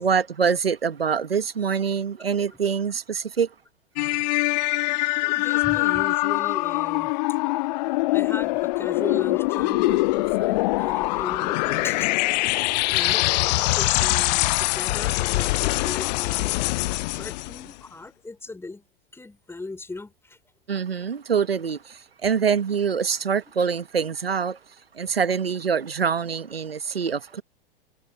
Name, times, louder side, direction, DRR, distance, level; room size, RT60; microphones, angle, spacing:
voice 1, 0.0-3.5 20.7-24.6 24.9-27.4, right 6 dB, 85° right, 1.3 m, -25 dB
sound 1, 4.0-17.7, left 22 dB, 45° left, 0.6 m, -23 dB
voice 2, 5.2-7.1 8.1-12.1 12.8-13.2 13.7-18.8 19.1-20.4, left 3 dB, 10° left, 4.1 m, -38 dB
figure-of-eight pair, 95°, 29 cm